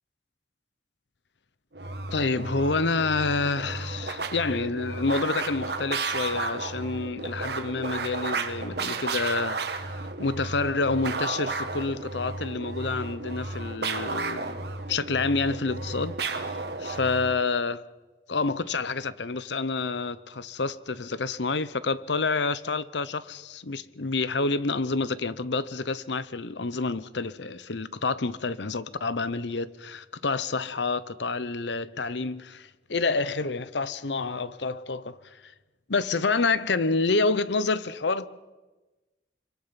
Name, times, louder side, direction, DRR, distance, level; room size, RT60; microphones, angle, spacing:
sound 1, 1.7-17.4, right 3 dB, 65° right, 1.8 m, -33 dB
voice 1, 2.1-9.6 10.2-14.6 14.9-16.4 16.8-17.8 18.3-35.2 35.9-38.3, left 3 dB, 80° left, 0.9 m, -28 dB
26.0 x 24.0 x 5.8 m
head